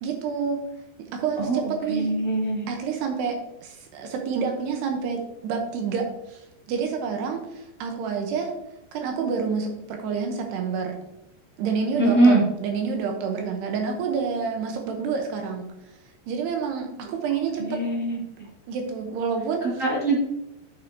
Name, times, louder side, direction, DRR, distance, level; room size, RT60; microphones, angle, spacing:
voice 1, 0.0-0.6 1.0-2.1 2.7-8.5 8.9-11.0 11.6-15.6 16.3-17.8 18.7-19.8, right 5 dB, 75° right, 3 dB, 2.9 m, -28 dB
voice 2, 1.9-2.6 12.0-12.4 17.6-18.2 19.8-20.2, right 2 dB, 35° right, -6 dB, 1.2 m, -21 dB
9.0 x 7.4 x 2.8 m, 0.87 s
omnidirectional pair, 5.2 m